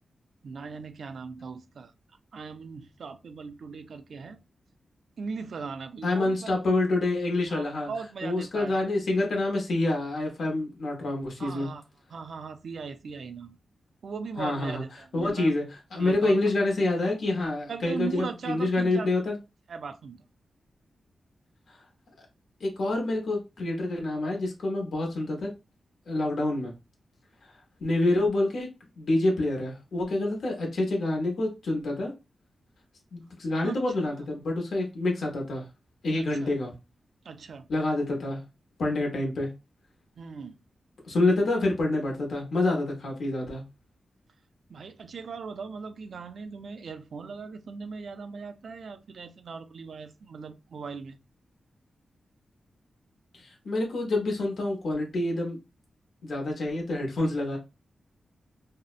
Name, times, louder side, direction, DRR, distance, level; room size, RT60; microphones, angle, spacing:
voice 1, 0.4-1.9 2.3-4.4 5.2-6.5 7.5-8.9 11.4-11.8 12.1-13.6 14.0-15.5 15.9-16.4 17.7-19.1 19.7-20.2 33.6-33.8 36.2-36.5 37.2-37.7 40.2-40.6 44.7-51.2, right 5 dB, 60° right, 0.3 m, -39 dB
voice 2, 6.0-7.9 8.2-11.7 14.4-14.8 15.1-19.4 22.6-25.5 26.1-26.7 27.8-28.7 29.0-32.1 33.1-35.6 36.0-36.7 37.7-38.4 38.8-39.5 41.0-43.6 53.3-55.6 56.2-57.6, left 2 dB, 65° left, 0.7 m, -27 dB
2.6 x 2.0 x 2.4 m
wide cardioid pair, 155°, 0 cm